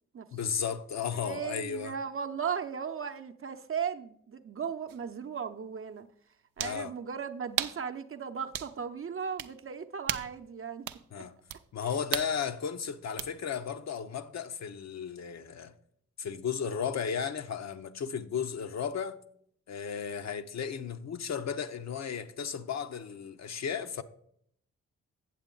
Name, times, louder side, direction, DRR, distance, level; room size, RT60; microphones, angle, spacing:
voice 1, 0.3-2.0 6.6-6.9 11.1-11.3 11.7-15.7 16.2-19.2 19.7-24.0, left 7 dB, 50° left, 0.7 m, -34 dB
voice 2, 1.1-6.1 6.6-10.9 11.2-11.3 11.8-11.9, right 7 dB, 35° right, 0.8 m, -37 dB
sound 1, 4.9-5.0 6.6-6.8 7.6-7.8 8.5-8.7 9.4-9.5 10.1-10.4 10.9-11.0 11.5-11.6 12.1-12.3 13.2-13.3, right 12 dB, 70° right, 0.6 m, -34 dB
8.0 x 7.5 x 3.9 m
hypercardioid pair, 45°, 36 cm